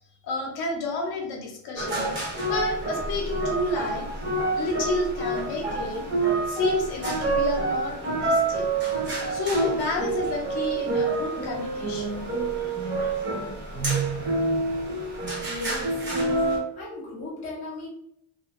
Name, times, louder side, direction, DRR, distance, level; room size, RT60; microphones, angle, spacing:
voice 1, 0.2-2.1 2.4-4.1 4.5-6.0 6.5-8.6 9.3-12.3, left 2 dB, 50° left, 1 dB, 0.7 m, -30 dB
sound 1, 1.8-16.6, right 3 dB, 25° right, 0.7 m, -27 dB
voice 2, 15.4-16.1 16.7-17.9, left 2 dB, 15° left, -5 dB, 0.4 m, -37 dB
2.7 x 2.4 x 2.5 m, 0.75 s
cardioid pair, 175°, 49 cm